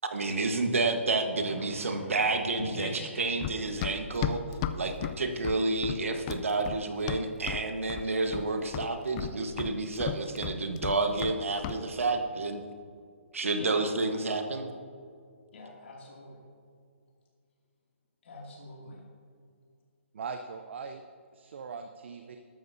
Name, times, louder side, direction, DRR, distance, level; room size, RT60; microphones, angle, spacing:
voice 1, 0.1-2.9 3.2-4.4 4.7-12.6 13.3-14.7, right 3 dB, 80° right, 6 dB, 1.3 m, -30 dB
voice 2, 1.5-2.1 2.6-3.1 13.5-13.8 15.5-16.4 18.2-19.0, left 2 dB, 65° left, -2 dB, 2.5 m, -42 dB
Run, 3.4-7.6 7.9-8.5 8.7-11.4 11.6-11.8, left 10 dB, 30° left, 0.4 m, -34 dB
voice 3, 20.1-21.0 21.3-22.4, right 5 dB, 60° right, 7 dB, 0.7 m, -40 dB
13.5 x 12.5 x 2.7 m, 2.2 s
hypercardioid pair, 140°, 7 cm